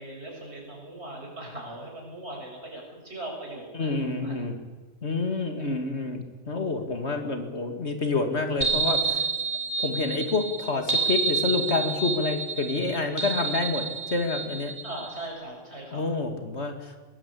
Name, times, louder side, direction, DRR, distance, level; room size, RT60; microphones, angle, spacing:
voice 1, 0.0-4.0 4.2-4.3 5.6-5.7 14.8-16.0, right 1 dB, 65° right, 0 dB, 6.8 m, -39 dB
voice 2, 3.7-4.6 5.0-9.2 9.8-14.7 15.9-16.9, left 3 dB, 65° left, 6 dB, 2.6 m, -28 dB
sound 1, 8.6-15.3, right 4 dB, 30° left, 5.0 m, -29 dB
22.5 x 18.0 x 8.6 m, 1.3 s
omnidirectional pair, 1.2 m